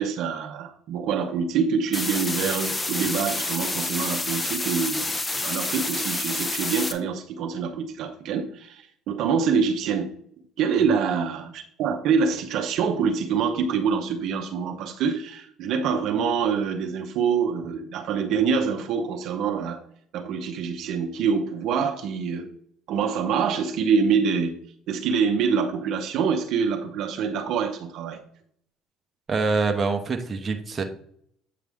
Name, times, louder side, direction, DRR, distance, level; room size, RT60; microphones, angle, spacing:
voice 1, 0.0-5.0 5.4-10.1 10.6-19.8 20.1-22.5 22.9-24.6 24.9-28.2, right 6 dB, 70° right, 4 dB, 0.8 m, -25 dB
sound 1, 1.9-6.9, left 2 dB, 20° left, 0.8 m, -28 dB
voice 2, 29.3-30.8, right 4 dB, 30° right, 5 dB, 0.9 m, -25 dB
8.5 x 4.7 x 3.6 m, 0.66 s
supercardioid pair, 90°, 0 cm